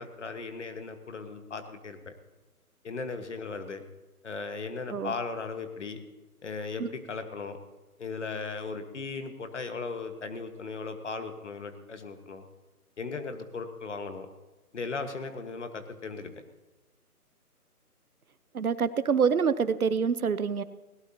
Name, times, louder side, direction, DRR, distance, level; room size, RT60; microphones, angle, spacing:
voice 1, 0.0-2.1 2.8-3.8 4.2-6.0 6.4-7.6 8.0-12.4 13.0-14.3 14.7-16.4, left 4 dB, 50° left, 8 dB, 1.6 m, -37 dB
voice 2, 18.5-20.6, right 6 dB, 65° right, 15 dB, 0.9 m, -26 dB
20.5 x 17.5 x 2.9 m, 1.1 s
figure-of-eight pair, 165°, 46 cm